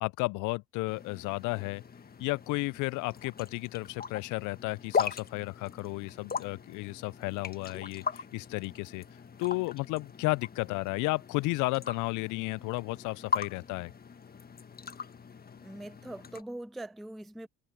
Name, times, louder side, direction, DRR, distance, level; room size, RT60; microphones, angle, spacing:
voice 1, 0.0-1.8 2.2-9.0 9.4-13.9, left 24 dB, 50° left, 0.5 m, -33 dB
sound 1, 0.9-16.4, left 6 dB, 25° left, 1.6 m, -39 dB
voice 2, 15.6-17.5, right 1 dB, ahead, 0.4 m, -42 dB
hypercardioid pair, 80°, 39 cm